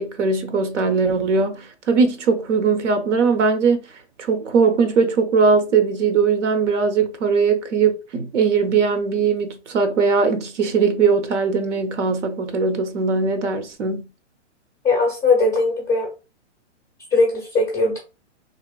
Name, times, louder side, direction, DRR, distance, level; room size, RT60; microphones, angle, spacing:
voice 1, 0.0-3.8 4.2-14.1, right 5 dB, 85° right, 0.8 m, -20 dB
voice 2, 14.8-16.1 17.1-18.0, left 3 dB, 10° left, 0.4 m, -19 dB
2.9 x 2.9 x 2.3 m
hypercardioid pair, 150°, 36 cm